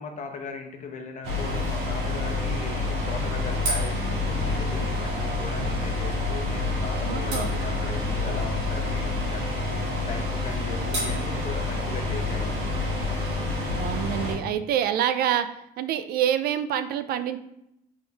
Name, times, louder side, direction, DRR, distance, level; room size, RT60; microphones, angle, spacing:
voice 1, 0.0-9.6 10.1-13.4, left 4 dB, 45° left, 4 dB, 0.8 m, -38 dB
sound 1, 1.2-14.3, left 2 dB, 90° right, 1.5 m, -27 dB
voice 2, 7.0-7.5 13.7-15.5 15.8-17.4, right 10 dB, 65° right, 10 dB, 0.4 m, -26 dB
4.3 x 3.7 x 3.3 m, 0.80 s
cardioid pair, 110°, 17 cm